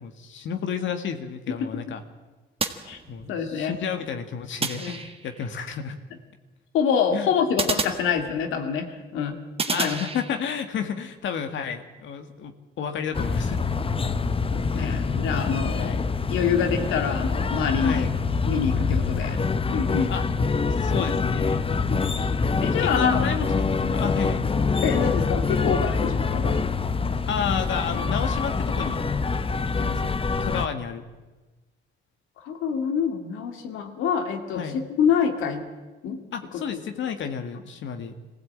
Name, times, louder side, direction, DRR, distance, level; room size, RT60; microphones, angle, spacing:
voice 1, 0.0-2.0 3.1-6.0 7.1-7.3 9.7-13.7 14.8-15.0 15.7-16.0 17.8-18.1 20.1-20.3 20.8-21.6 22.7-24.4 27.3-29.0 29.3-29.4 29.7-30.1 30.4-31.1 34.5-34.8 36.3-38.1, left 7 dB, 70° left, 7 dB, 1.9 m, -31 dB
sound 1, 2.6-3.5 4.6-5.5 7.6-8.7 9.6-10.7, right 4 dB, 30° right, 1.5 m, -31 dB
voice 2, 3.3-3.7 4.8-5.0 6.7-9.4 9.7-10.0 14.5-18.1 18.4-19.4 19.6-20.1 21.9-22.1 22.6-23.2 24.8-26.6 32.4-35.6 36.0-36.2 36.7-36.8, left 7 dB, 90° left, 6 dB, 2.4 m, -26 dB
sound 2, 13.1-30.7, left 4 dB, 25° left, 0.9 m, -25 dB
22.5 x 15.5 x 8.8 m, 1.2 s
cardioid pair, 90°, 20 cm